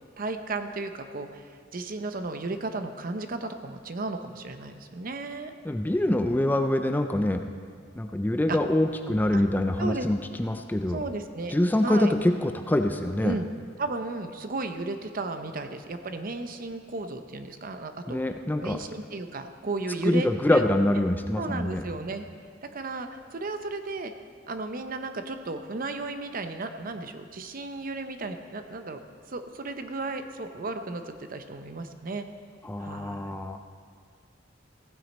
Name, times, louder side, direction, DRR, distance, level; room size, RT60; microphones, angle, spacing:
voice 1, 0.2-5.5 8.5-8.6 9.3-9.4 9.8-10.1 10.9-11.5 11.8-12.1 13.2-13.5 13.8-18.2 18.6-20.6 21.4-22.2 22.7-24.1 24.5-29.0 29.3-32.3 32.8-33.3, right 3 dB, 45° right, 8 dB, 0.7 m, -34 dB
voice 2, 5.6-7.4 8.0-11.0 11.5-13.4 18.1-18.8 20.1-21.8 32.6-33.6, left 1 dB, 10° left, 6 dB, 0.4 m, -25 dB
15.5 x 9.2 x 4.2 m, 2.1 s
head